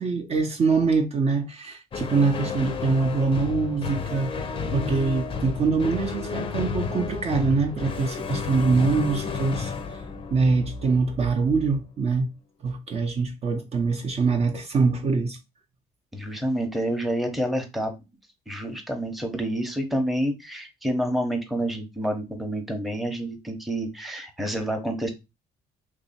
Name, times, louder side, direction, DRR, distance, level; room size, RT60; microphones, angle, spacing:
voice 1, 0.0-10.0 10.3-12.3 12.6-15.4, right 4 dB, 40° right, 0.7 m, -24 dB
sound 1, 1.9-11.3, left 5 dB, 30° left, 0.6 m, -32 dB
voice 2, 16.1-17.9 18.5-25.1, right 1 dB, ahead, 0.8 m, -28 dB
3.1 x 2.7 x 4.1 m
cardioid pair, 110°, 17 cm